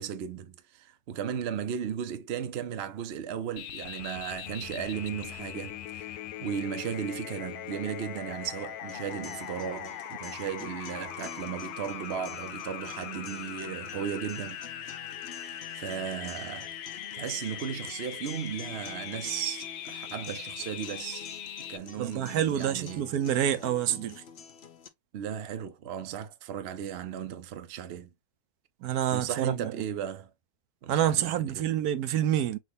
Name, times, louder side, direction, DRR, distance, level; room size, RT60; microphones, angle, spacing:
voice 1, 0.0-14.7 15.3-16.8 17.1-21.3 21.7-23.1 25.1-28.1 29.1-30.3 30.8-31.7, right 8 dB, 60° right, 0.7 m, -36 dB
sound 1, 3.6-21.8, left 11 dB, 85° left, 1.1 m, -40 dB
sound 2, 8.9-24.9, left 6 dB, 55° left, 0.9 m, -48 dB
voice 2, 22.0-24.2 28.8-29.8 30.9-32.6, right 10 dB, 80° right, 1.1 m, -27 dB
6.4 x 2.4 x 3.3 m
omnidirectional pair, 1.6 m